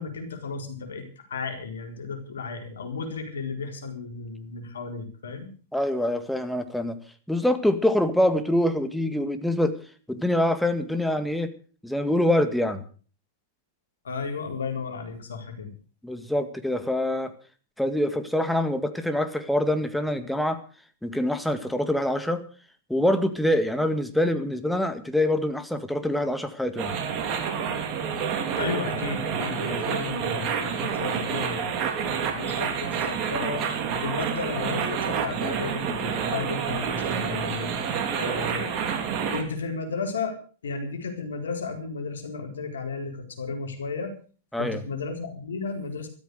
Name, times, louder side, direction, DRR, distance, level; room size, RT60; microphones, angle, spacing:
voice 1, 0.0-5.5 14.0-15.7 28.6-33.6 34.0-37.7 38.1-38.7 39.3-44.1 44.6-46.1, left 4 dB, 75° left, 4 dB, 4.2 m, -34 dB
voice 2, 5.7-7.0 7.3-9.8 10.1-11.5 11.8-12.8 16.0-17.3 17.8-20.6 21.0-22.4 22.9-26.9 44.5-44.8, left 1 dB, ahead, 8 dB, 2.0 m, -25 dB
sound 1, 26.8-39.4, right 7 dB, 40° right, 3.9 m, -28 dB
13.5 x 13.5 x 6.5 m, 0.40 s
hypercardioid pair, 105°, 0 cm